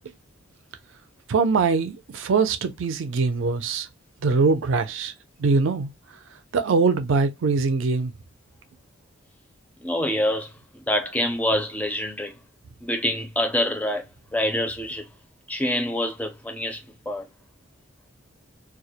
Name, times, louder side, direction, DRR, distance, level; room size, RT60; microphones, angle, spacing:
voice 1, 1.3-3.9 4.2-5.1 5.4-5.9 6.5-8.1, right 4 dB, 65° right, 0.4 m, -22 dB
voice 2, 9.8-12.3 12.8-14.1 14.3-15.1 15.5-17.3, left 1 dB, 5° left, 0.4 m, -26 dB
2.2 x 2.0 x 2.7 m
head